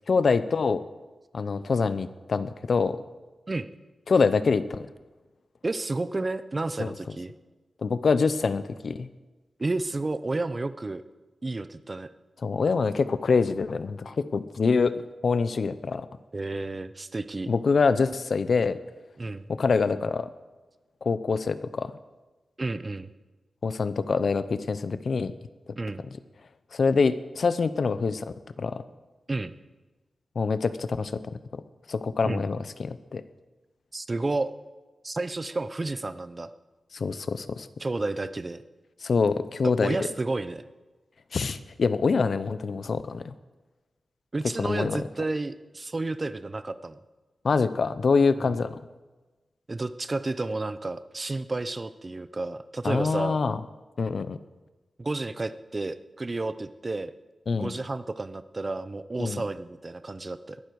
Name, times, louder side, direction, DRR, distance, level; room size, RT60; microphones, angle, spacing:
voice 1, 0.1-0.8 1.3-3.0 4.1-4.8 6.8-6.9 7.8-9.1 12.4-16.1 17.5-18.8 19.5-20.3 21.0-21.9 23.6-25.3 26.7-28.8 30.4-31.1 31.9-33.2 36.9-37.7 39.0-40.0 41.3-43.3 44.6-45.0 47.4-48.8 52.8-53.6 54.0-54.4 57.5-57.7 59.2-59.4, left 4 dB, 50° left, 13 dB, 0.7 m, -25 dB
voice 2, 5.6-7.3 9.6-11.0 11.4-12.1 16.3-17.5 19.2-19.5 22.6-23.1 25.8-26.0 29.3-29.5 32.2-32.4 33.9-34.5 35.0-36.5 37.8-38.6 39.6-40.6 44.3-47.0 48.4-48.6 49.7-53.4 55.0-57.1 57.5-60.6, right 2 dB, 25° right, 13 dB, 0.6 m, -31 dB
21.0 x 12.0 x 4.7 m, 1.2 s
wide cardioid pair, 165°, 0 cm